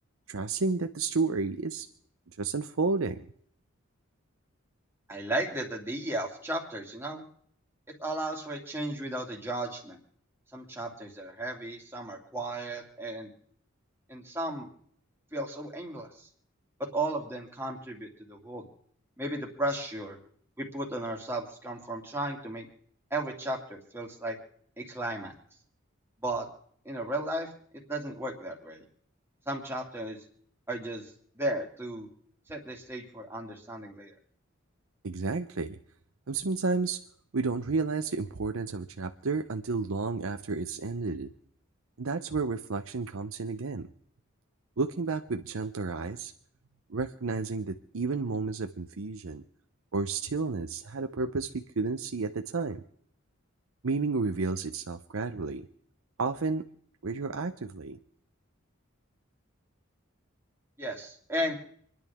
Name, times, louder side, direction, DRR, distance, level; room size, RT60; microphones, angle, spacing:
voice 1, 0.3-1.9 2.4-3.3 35.0-35.8 36.3-37.0 37.3-41.3 42.0-43.9 44.8-46.3 46.9-49.4 49.9-52.8 53.8-55.6 56.2-56.6 57.0-58.0, right 4 dB, 80° right, 7 dB, 0.7 m, -31 dB
voice 2, 5.1-7.2 8.0-10.0 10.5-13.3 14.1-14.7 15.3-16.3 16.9-18.6 19.2-20.2 20.6-22.7 23.1-24.4 24.8-25.3 26.2-26.5 26.8-27.5 27.7-28.8 29.5-30.2 30.7-31.1 31.4-32.1 32.5-34.1 60.8-61.6, right 1 dB, 10° right, -1 dB, 2.5 m, -34 dB
27.5 x 10.5 x 3.6 m, 0.62 s
head